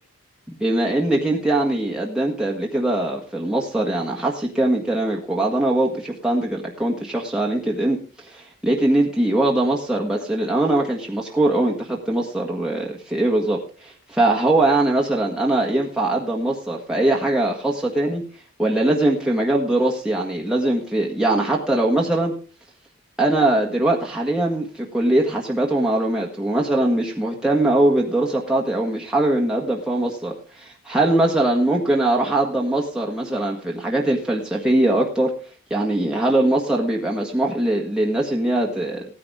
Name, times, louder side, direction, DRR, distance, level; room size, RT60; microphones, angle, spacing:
voice 1, 0.5-18.2 18.6-22.4 23.2-35.3 35.7-39.1, right 1 dB, 5° right, -2 dB, 1.6 m, -21 dB
17.0 x 9.7 x 3.6 m, 0.37 s
head